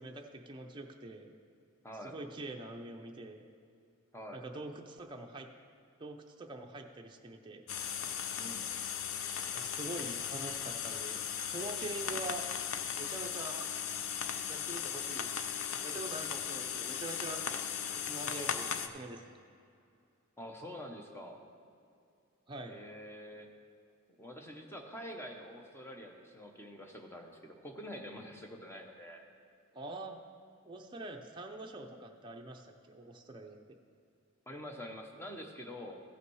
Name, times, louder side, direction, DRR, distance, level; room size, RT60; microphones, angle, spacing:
voice 1, 0.0-1.3 2.0-3.5 4.3-5.5 6.0-7.6 9.5-12.5 13.0-13.7 14.5-15.5 15.8-17.4 17.9-19.4 22.5-22.8 29.7-30.2 30.6-33.6, right 2 dB, 20° right, 2 dB, 0.6 m, -44 dB
voice 2, 1.8-2.2 4.1-4.4 8.3-8.7 20.4-21.4 22.7-23.5 24.2-29.2 34.5-36.0, equal, 10° left, 2 dB, 0.9 m, -46 dB
sound 1, 7.7-18.9, left 8 dB, 70° left, 0.5 m, -37 dB
15.5 x 5.7 x 4.7 m, 2.4 s
head